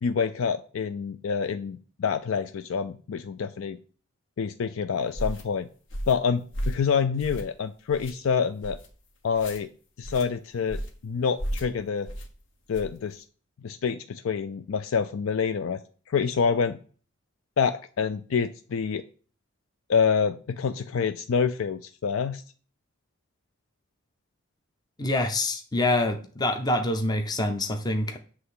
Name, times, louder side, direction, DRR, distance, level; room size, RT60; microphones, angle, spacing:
voice 1, 0.0-3.8 4.4-5.7 6.1-8.8 9.2-9.7 10.0-12.1 12.7-13.2 13.6-15.8 16.1-16.8 17.6-19.0 19.9-22.4, left 6 dB, 75° left, 10 dB, 0.4 m, -27 dB
sound 1, 5.1-5.4 5.9-6.2 6.5-6.8 7.2-7.6 7.9-8.1 8.6-8.9 9.3-9.6 10.0-10.3 10.7-11.0 11.4-11.7 12.1-12.3 12.7-13.0, equal, 60° left, 1.1 m, -33 dB
voice 2, 25.0-28.2, left 2 dB, 20° left, 5 dB, 0.6 m, -26 dB
7.9 x 3.4 x 5.5 m, 0.40 s
head